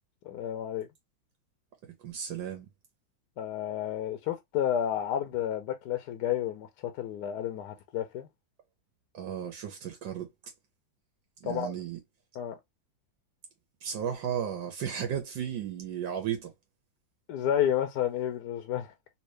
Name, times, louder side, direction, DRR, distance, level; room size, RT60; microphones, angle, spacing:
voice 1, 0.2-0.9 3.4-8.3 11.4-11.7 12.3-12.6 17.3-18.9, left 10 dB, 70° left, 1.1 m, -31 dB
voice 2, 2.0-2.7 9.1-10.3 11.4-12.0 13.8-16.5, right 9 dB, 75° right, 1.6 m, -34 dB
3.5 x 2.8 x 3.0 m
omnidirectional pair, 2.1 m